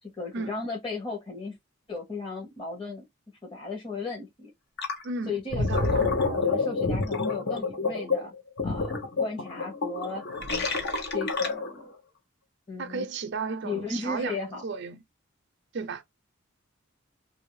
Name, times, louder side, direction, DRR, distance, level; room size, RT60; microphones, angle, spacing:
voice 1, 0.0-1.6 1.9-3.0 3.5-4.5 5.3-8.3 8.6-10.2 11.1-11.9 12.7-13.0 13.6-14.6, left 3 dB, 25° left, 1.1 m, -35 dB
Gurgling, 4.8-5.0 5.4-11.8, left 3 dB, 55° left, 0.9 m, -28 dB
voice 2, 5.0-6.1 12.8-15.0 15.7-16.0, right 4 dB, 55° right, 0.6 m, -34 dB
2.9 x 2.7 x 3.1 m
head